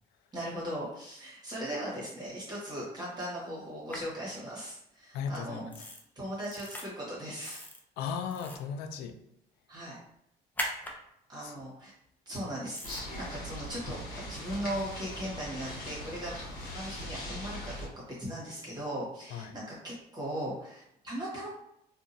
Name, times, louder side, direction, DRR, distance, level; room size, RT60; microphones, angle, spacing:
voice 1, 0.3-5.6 6.1-7.6 9.7-10.0 11.3-11.9 12.3-14.0 14.3-16.4 16.7-17.9 18.2-21.5, equal, 25° right, -6 dB, 1.3 m, -38 dB
sound 1, 3.9-4.0 5.7-6.0 6.4-6.8 7.4-7.8 8.3-8.7 10.6-10.9 12.8-13.0, equal, 10° left, 0.4 m, -38 dB
voice 2, 5.1-5.7 8.0-9.2 11.4-11.5 19.3-19.5, left 6 dB, 85° left, 7 dB, 0.4 m, -36 dB
sound 2, 12.8-17.9, equal, 55° left, 1.1 m, -40 dB
2.7 x 2.4 x 2.5 m, 0.76 s
cardioid pair, 110°, 17 cm